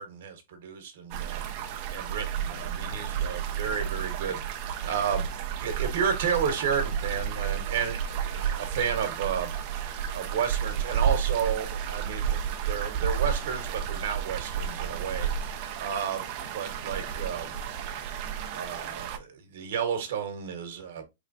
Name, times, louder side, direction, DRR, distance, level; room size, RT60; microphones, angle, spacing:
voice 1, 0.0-1.4 1.9-5.3 5.6-9.5 10.1-17.6 18.5-21.0, right 7 dB, 55° right, 1.2 m, -32 dB
sound 1, 1.1-19.2, right 8 dB, 30° right, 0.5 m, -32 dB
4.3 x 3.3 x 2.6 m
supercardioid pair, 170°, 0 cm